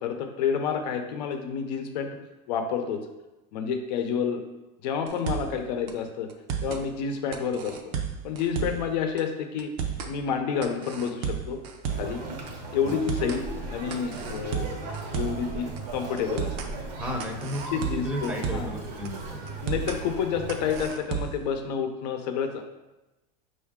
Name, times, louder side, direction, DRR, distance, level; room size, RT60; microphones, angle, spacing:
voice 1, 0.0-2.2 2.5-3.0 3.5-4.4 4.8-6.3 6.6-7.8 8.2-9.7 10.0-11.6 11.9-12.2 12.7-14.7 15.1-16.5 17.7-18.7 19.6-22.6, left 7 dB, 80° left, 6 dB, 0.6 m, -29 dB
sound 1, 5.1-5.6 5.9-6.0 6.3-6.8 7.3-8.9 9.2-9.3 9.6-10.1 10.6-12.2 12.5-12.6 12.9-13.4 13.9-15.5 15.8-15.9 16.2-16.7 17.2-18.8 19.0-19.1 19.5-20.0 20.5-21.5, right 7 dB, 55° right, 0.5 m, -32 dB
Conversation, 11.8-20.9, right 2 dB, 80° right, 1.0 m, -38 dB
voice 2, 17.0-19.4, left 1 dB, 5° right, -1 dB, 0.6 m, -34 dB
5.5 x 2.6 x 3.6 m, 1.0 s
supercardioid pair, 155°, 21 cm